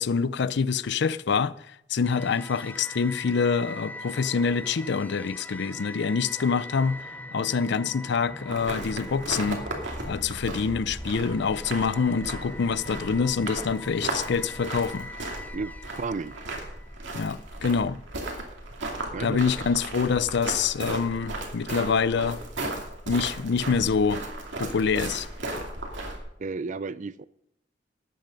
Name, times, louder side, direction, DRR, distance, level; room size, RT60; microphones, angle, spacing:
voice 1, 0.0-1.5 1.9-7.0 7.3-9.6 10.0-15.1 17.1-18.0 19.2-22.4 23.1-24.2 24.6-25.3, left 5 dB, 65° left, 0.5 m, -26 dB
sound 1, 2.0-17.2, left 1 dB, 10° left, 0.5 m, -41 dB
sound 2, 8.5-26.2, right 2 dB, 70° right, 2.5 m, -36 dB
voice 2, 16.0-16.4 19.1-19.4 26.4-27.2, right 4 dB, 40° right, 0.4 m, -32 dB
13.0 x 8.9 x 5.3 m
head